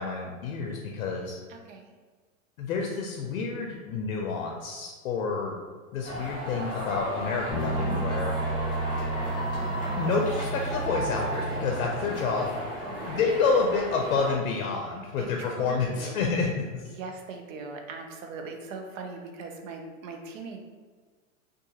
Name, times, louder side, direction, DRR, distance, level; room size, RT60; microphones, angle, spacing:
voice 1, 0.0-1.4 2.6-5.6 5.9-8.3 10.0-12.5 13.0-16.9, left 4 dB, 75° left, 0 dB, 0.5 m, -29 dB
voice 2, 1.5-1.9 12.8-13.3 15.2-16.2 16.9-20.6, right 4 dB, 65° right, 3 dB, 0.6 m, -40 dB
sound 1, 6.0-14.4, equal, 10° right, 0.9 m, -35 dB
sound 2, 7.5-12.4, right 2 dB, 20° left, 0.7 m, -32 dB
2.5 x 2.3 x 2.7 m, 1.5 s
hypercardioid pair, 140°, 41 cm